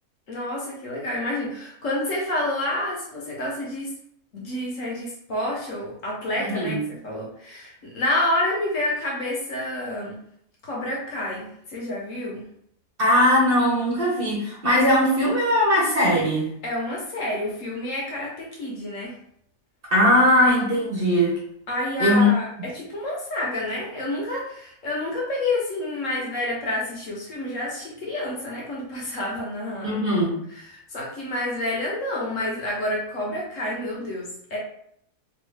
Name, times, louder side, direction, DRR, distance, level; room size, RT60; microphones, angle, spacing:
voice 1, 0.3-3.9 4.3-10.2 10.6-12.5 16.6-19.1 21.7-30.0 30.5-34.6, left 1 dB, 60° left, -3 dB, 1.2 m, -29 dB
voice 2, 6.4-6.8 13.0-16.5 19.9-21.4 22.0-22.3 29.8-30.4, left 1 dB, 40° right, -5 dB, 1.0 m, -20 dB
3.0 x 2.5 x 3.3 m, 0.69 s
omnidirectional pair, 1.6 m